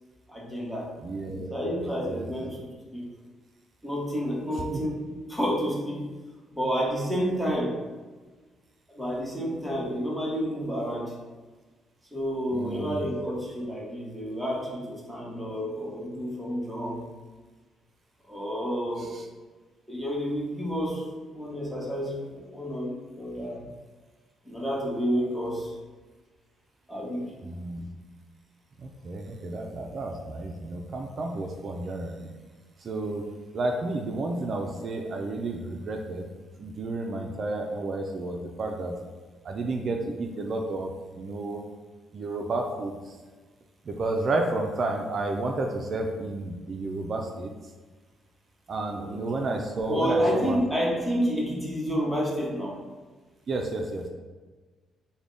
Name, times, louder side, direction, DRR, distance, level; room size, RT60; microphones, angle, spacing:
voice 1, 0.3-0.9 1.5-3.1 3.8-6.1 6.6-7.8 8.9-11.1 12.1-17.0 18.3-19.2 19.9-23.6 24.4-25.7 26.9-27.3 48.9-49.5 49.9-52.8, equal, 5° left, -4 dB, 1.0 m, -30 dB
voice 2, 1.0-1.5 2.0-2.3 4.7-4.8 12.5-13.1 19.1-19.2 27.4-27.9 28.8-32.3 32.8-33.2 33.5-36.2 36.6-39.0 39.4-41.6 42.1-43.2 43.9-47.5 48.7-50.6 53.5-54.0, right 2 dB, 50° right, 2 dB, 0.3 m, -31 dB
3.4 x 2.1 x 3.8 m, 1.3 s
cardioid pair, 90°, 0 cm